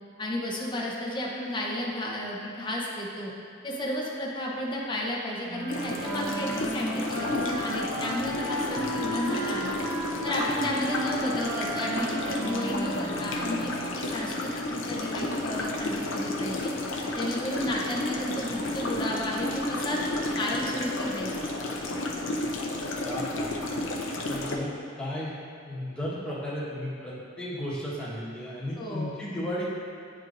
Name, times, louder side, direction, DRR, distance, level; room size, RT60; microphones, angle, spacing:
voice 1, 0.2-3.3 3.6-9.8 10.2-16.7 17.2-21.3 28.8-29.1, left 1 dB, 25° left, -4 dB, 0.9 m, -33 dB
Wind instrument woodwind instrument, 5.5-14.0, right 1 dB, 55° right, 0.9 m, -34 dB
sound 1, 5.7-24.6, left 1 dB, 65° left, 0.6 m, -32 dB
voice 2, 8.7-9.1 10.5-10.7 23.0-23.5 24.1-24.7 25.0-25.3 25.7-29.6, left 1 dB, 5° left, -9 dB, 1.4 m, -34 dB
9.8 x 4.4 x 2.6 m, 2.4 s
head